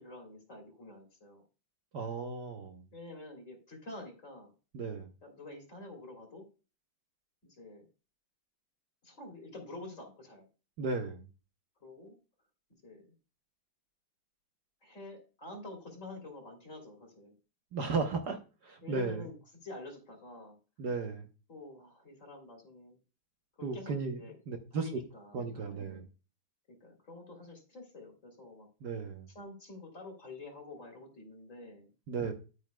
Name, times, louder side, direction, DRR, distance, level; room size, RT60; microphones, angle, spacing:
voice 1, 0.0-1.4 2.9-4.5 5.2-6.5 7.4-7.9 9.0-10.4 11.8-12.2 12.8-13.0 14.8-17.3 18.8-19.3 19.6-20.6 21.5-23.0 23.6-24.4 24.7-26.0 26.7-28.7 29.3-31.9, left 2 dB, 40° left, 3.2 m, -48 dB
voice 2, 1.9-2.8 4.7-5.1 10.8-11.3 17.7-18.4 18.6-19.3 20.8-21.3 23.6-24.2 24.5-24.9 25.3-26.1 28.8-29.3 32.1-32.3, right 4 dB, 60° right, 1.5 m, -35 dB
10.5 x 8.8 x 2.2 m
omnidirectional pair, 2.2 m